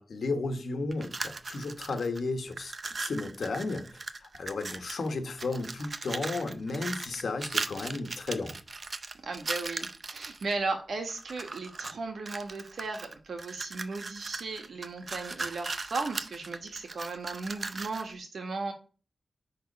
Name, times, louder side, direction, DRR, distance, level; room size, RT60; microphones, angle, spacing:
voice 1, 0.0-3.9 4.2-8.6, left 3 dB, 75° left, 1.4 m, -34 dB
sound 1, 0.9-2.2 2.5-5.1 5.4-10.5 11.1-12.0 12.3-18.1, right 3 dB, 45° right, 0.6 m, -38 dB
voice 2, 9.2-18.7, right 3 dB, 85° right, 1.8 m, -36 dB
9.7 x 3.9 x 5.4 m
wide cardioid pair, 130°, 0 cm